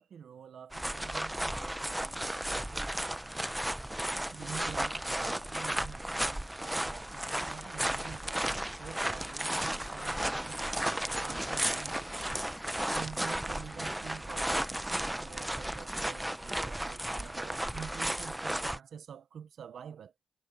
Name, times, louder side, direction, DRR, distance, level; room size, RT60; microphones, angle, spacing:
voice 1, 0.0-3.3 4.3-12.2 12.9-20.1, right 7 dB, 70° right, 1.1 m, -48 dB
sound 1, 0.7-18.8, right 1 dB, 10° right, 0.8 m, -34 dB
cardioid pair, 65°, 0 cm